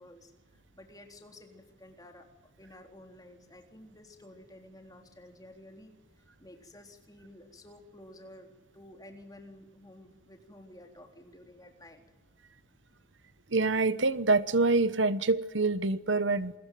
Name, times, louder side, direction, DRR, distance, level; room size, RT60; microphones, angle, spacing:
voice 1, 0.0-2.3 2.6-12.0, left 1 dB, 20° left, 4 dB, 3.6 m, -52 dB
voice 2, 13.5-16.5, right 3 dB, 65° right, 14 dB, 1.1 m, -26 dB
27.5 x 22.0 x 9.3 m, 1.1 s
head